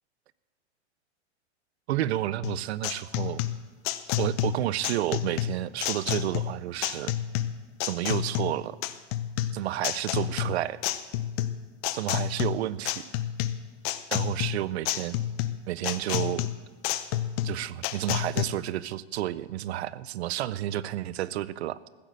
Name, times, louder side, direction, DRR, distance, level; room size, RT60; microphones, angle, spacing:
voice 1, 1.9-3.4 4.2-7.1 7.8-8.8 9.5-10.8 11.9-13.0 14.1-15.2 15.7-16.5 17.4-21.8, right 13 dB, 70° right, 19 dB, 0.7 m, -30 dB
sound 1, 2.4-18.4, left 12 dB, 35° left, 0.6 m, -30 dB
14.5 x 8.2 x 7.7 m, 1.3 s
supercardioid pair, 155°, 34 cm